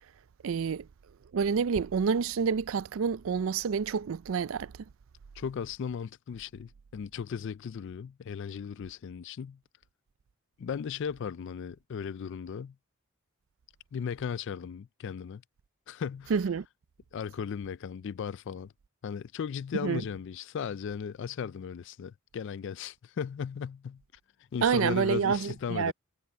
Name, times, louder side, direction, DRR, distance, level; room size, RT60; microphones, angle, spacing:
voice 1, 0.4-0.9 1.3-4.7 16.3-16.7 19.8-20.0 24.6-25.9, right 6 dB, 65° right, 0.4 m, -28 dB
voice 2, 5.4-9.6 10.6-12.7 13.9-15.4 15.9-16.3 17.1-18.7 19.0-24.0 24.5-25.9, left 7 dB, 60° left, 0.3 m, -36 dB
head